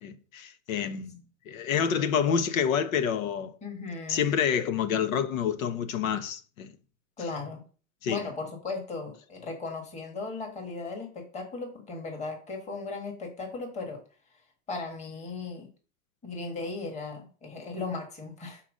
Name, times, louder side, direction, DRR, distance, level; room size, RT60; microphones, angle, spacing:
voice 1, 0.0-3.5 4.1-6.7 8.0-8.2, left 7 dB, 85° left, 1.1 m, -28 dB
voice 2, 3.6-4.3 7.2-7.6 8.1-14.0 14.7-15.7 16.2-18.6, left 3 dB, 15° left, 1.6 m, -37 dB
5.8 x 4.3 x 6.4 m
supercardioid pair, 150°, 40 cm